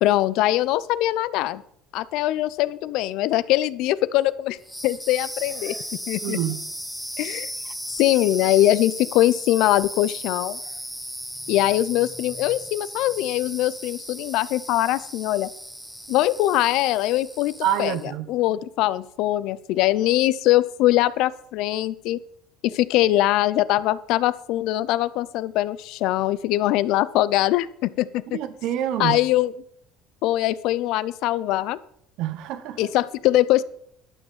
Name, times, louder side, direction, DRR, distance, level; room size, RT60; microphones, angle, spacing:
voice 1, 0.0-1.6 1.9-4.6 4.8-5.8 6.1-6.4 7.2-7.5 8.0-10.6 11.5-15.5 16.1-18.0 18.3-22.2 22.6-28.4 29.0-29.5 30.2-31.8 32.8-33.6, left 15 dB, 65° left, 17 dB, 0.5 m, -22 dB
sound 1, 4.6-18.1, equal, ahead, 1.0 m, -36 dB
voice 2, 6.2-6.6 17.6-18.3 28.3-29.2 32.2-32.9, right 11 dB, 60° right, 12 dB, 1.1 m, -27 dB
11.5 x 6.3 x 7.3 m, 0.71 s
cardioid pair, 135°, 0 cm